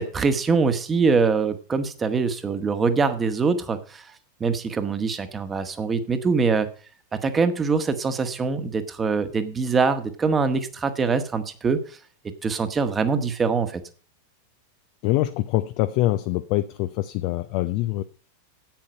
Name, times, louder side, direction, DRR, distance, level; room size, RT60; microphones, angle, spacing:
voice 1, 0.0-4.0 4.4-6.7 7.1-12.0 12.4-13.8, right 4 dB, 20° right, 10 dB, 1.5 m, -23 dB
voice 2, 15.0-18.0, left 16 dB, 45° left, 10 dB, 0.7 m, -24 dB
10.5 x 9.0 x 5.5 m, 0.39 s
figure-of-eight pair, 90°, 0 cm